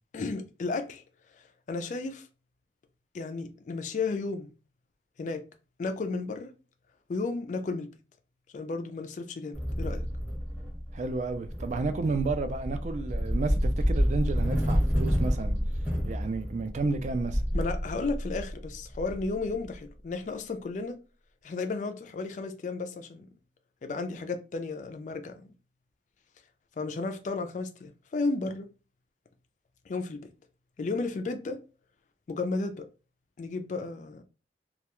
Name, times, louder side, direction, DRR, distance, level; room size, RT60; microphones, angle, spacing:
voice 1, 0.1-1.0 1.7-2.3 3.1-4.5 5.2-5.4 5.8-6.5 7.1-7.9 8.5-10.0 17.5-21.0 21.4-23.3 23.8-25.5 26.8-28.7 29.9-30.3 30.8-31.6 32.3-32.9 33.4-34.2, left 3 dB, 45° left, 0.3 m, -33 dB
sound 1, 9.5-19.7, equal, 10° right, 0.9 m, -29 dB
voice 2, 10.9-15.6 16.0-17.4, right 3 dB, 40° right, 0.3 m, -31 dB
2.3 x 2.2 x 2.9 m
head